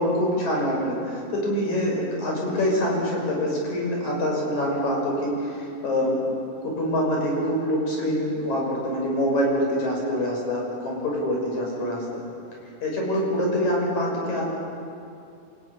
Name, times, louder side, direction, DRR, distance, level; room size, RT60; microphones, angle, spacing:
voice 1, 0.0-6.3 6.6-12.0 12.8-14.4, equal, 65° left, -2 dB, 7.8 m, -25 dB
28.0 x 17.5 x 9.9 m, 2.6 s
omnidirectional pair, 3.6 m